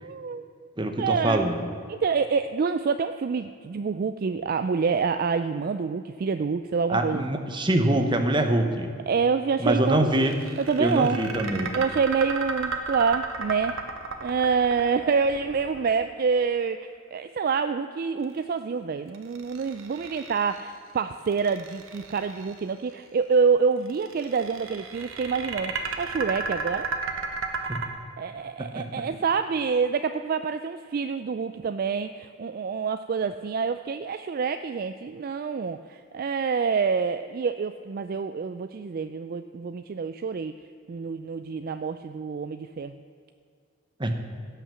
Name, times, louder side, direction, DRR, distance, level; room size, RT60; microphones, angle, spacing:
voice 1, 0.0-1.5 1.9-7.2 9.1-10.3 10.6-11.2 11.7-13.8 14.2-26.9 28.2-40.5 40.9-43.0, right 5 dB, 45° right, 10 dB, 0.3 m, -27 dB
voice 2, 0.8-1.7 6.9-8.9 9.6-10.3 10.8-11.8 27.7-27.8 28.6-28.9 44.0-44.2, right 1 dB, 20° right, 6 dB, 0.9 m, -24 dB
sound 1, 10.1-16.3 19.1-20.7 21.3-22.6 23.9-27.9, right 4 dB, 75° right, 1.2 m, -34 dB
16.5 x 5.7 x 7.6 m, 2.3 s
head